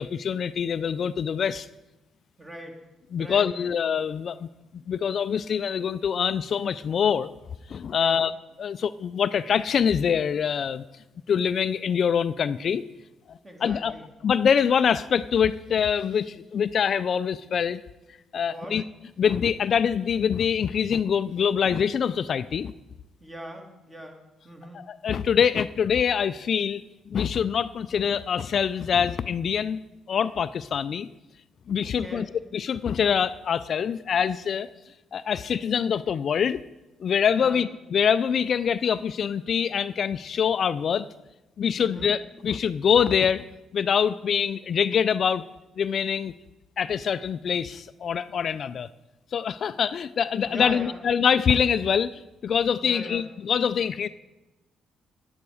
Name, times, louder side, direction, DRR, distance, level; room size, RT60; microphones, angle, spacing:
voice 1, 0.0-1.7 3.1-4.5 4.9-7.3 7.7-8.3 8.6-10.8 11.3-12.8 13.3-13.9 14.2-17.8 18.3-18.8 19.2-22.7 24.7-26.8 27.1-29.8 30.1-31.1 31.7-32.3 32.5-34.7 35.1-36.6 37.0-41.1 41.6-43.4 43.7-45.4 45.8-46.3 46.8-48.9 49.3-54.1, left 7 dB, 55° left, 14 dB, 0.4 m, -24 dB
voice 2, 2.4-2.8 3.2-3.7 7.9-8.3 13.4-14.1 18.5-18.8 23.2-24.8 31.8-32.3 37.4-37.6 41.8-42.1 50.4-51.0 52.8-53.3, right 1 dB, 25° right, 3 dB, 2.3 m, -41 dB
10.5 x 9.7 x 4.8 m, 1.0 s
cardioid pair, 90°, 0 cm